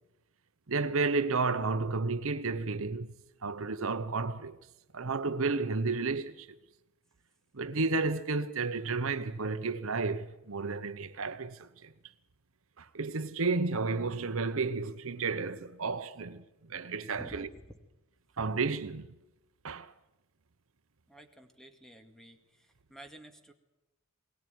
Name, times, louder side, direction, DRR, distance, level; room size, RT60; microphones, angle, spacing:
voice 1, 0.7-3.1 3.4-4.6 4.9-6.5 7.5-11.9 12.8-16.4 16.7-17.5 18.4-19.1 19.6-19.9, right 4 dB, 65° right, 0.9 m, -32 dB
voice 2, 21.1-23.5, equal, ahead, 2.2 m, -51 dB
22.0 x 19.0 x 9.3 m
head